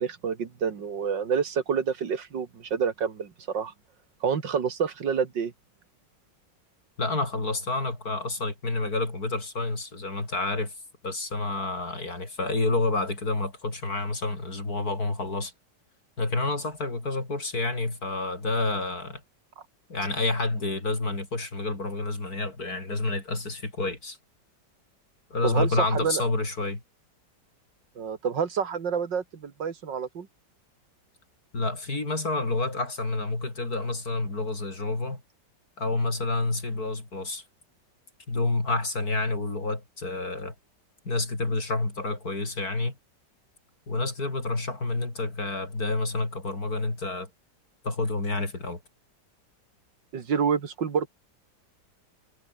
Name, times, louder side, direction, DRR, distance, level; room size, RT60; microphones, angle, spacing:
voice 1, 0.0-3.7 4.2-5.5 25.4-26.2 28.0-30.3 50.1-51.1, right 6 dB, 85° right, 2.7 m, -28 dB
voice 2, 7.0-10.7 11.0-15.5 16.2-19.2 19.9-24.2 25.3-26.8 31.5-35.2 35.8-37.4 38.3-40.5 41.1-43.0 43.9-47.3 47.8-48.8, left 2 dB, 55° left, 5.4 m, -29 dB
omnidirectional pair, 1.9 m